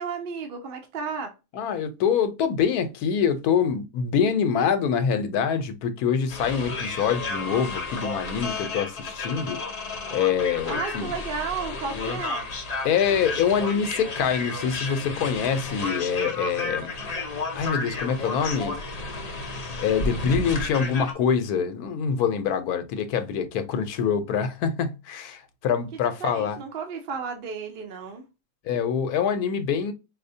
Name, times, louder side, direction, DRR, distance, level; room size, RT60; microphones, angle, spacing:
voice 1, 0.0-1.3 10.7-12.5 25.9-28.2, right 5 dB, 55° right, 0.6 m, -33 dB
voice 2, 1.5-9.6 10.1-11.1 11.9-12.2 12.8-16.9 17.5-18.8 19.8-26.6 28.6-29.9, left 7 dB, 85° left, 1.1 m, -25 dB
sound 1, 6.3-21.1, left 3 dB, 40° left, 0.6 m, -32 dB
Wind instrument woodwind instrument, 6.8-12.7, left 5 dB, 10° right, 1.6 m, -44 dB
4.2 x 2.6 x 2.6 m
omnidirectional pair, 1.6 m